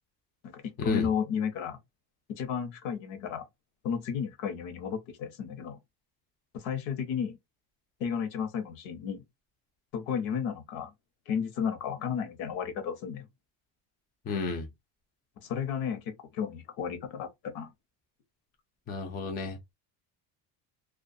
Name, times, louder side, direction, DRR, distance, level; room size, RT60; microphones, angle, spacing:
voice 1, 0.4-1.8 2.3-3.5 3.8-5.8 6.5-7.4 8.0-9.2 9.9-10.9 11.3-13.3 15.4-17.7, left 7 dB, 80° left, 0.9 m, -33 dB
voice 2, 14.3-14.7 18.9-19.6, left 4 dB, 20° left, 0.3 m, -32 dB
2.3 x 2.2 x 2.6 m
cardioid pair, 170°, 45 cm